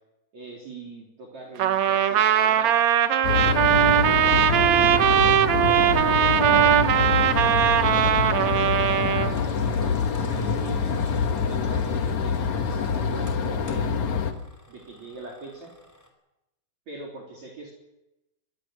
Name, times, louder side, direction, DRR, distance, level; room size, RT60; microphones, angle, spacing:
voice 1, 0.3-2.8 3.3-5.2 5.6-6.8 7.7-11.0 11.4-13.9 14.7-15.7 16.9-17.7, right 3 dB, 45° right, 1 dB, 4.5 m, -42 dB
Trumpet, 1.6-9.3, right 10 dB, 80° right, 1.5 m, -20 dB
sound 1, 3.2-14.3, left 5 dB, 55° left, 2.5 m, -26 dB
Engine, 8.5-16.1, left 2 dB, 5° left, 4.4 m, -45 dB
26.0 x 21.0 x 6.4 m, 0.95 s
omnidirectional pair, 4.9 m